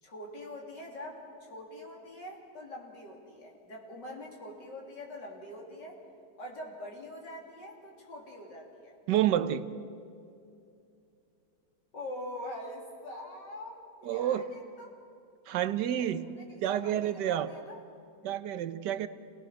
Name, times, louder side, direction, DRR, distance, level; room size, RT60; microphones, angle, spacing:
voice 1, 0.0-6.0 6.4-8.9 11.9-15.0 15.8-17.8, left 1 dB, 90° left, -1 dB, 3.9 m, -44 dB
voice 2, 9.1-9.7 14.0-14.5 15.5-16.3 16.6-17.5 18.2-19.1, right 11 dB, 85° right, 13 dB, 1.4 m, -29 dB
28.0 x 18.0 x 6.3 m, 2.6 s
omnidirectional pair, 1.8 m